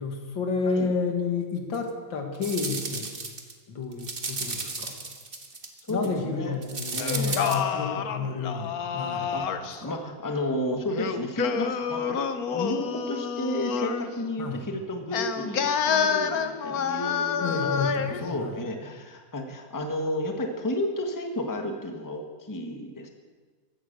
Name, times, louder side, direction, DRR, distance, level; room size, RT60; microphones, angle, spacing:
voice 1, 0.0-3.1 3.7-4.9 5.9-9.9 14.4-14.6 17.4-18.6, left 4 dB, 75° left, 3 dB, 2.6 m, -31 dB
sound 1, 1.7-1.8 2.4-3.5 3.9-6.1 6.6-7.6, right 3 dB, 30° right, 1.6 m, -34 dB
voice 2, 5.9-6.6 6.9-7.6 9.3-12.2 12.5-17.8 18.2-23.1, left 1 dB, 10° left, 4 dB, 1.4 m, -32 dB
Singing, 7.0-9.8 10.9-14.1 15.1-18.2, left 7 dB, 55° left, 1.2 m, -28 dB
15.0 x 13.5 x 6.7 m, 1.4 s
omnidirectional pair, 2.1 m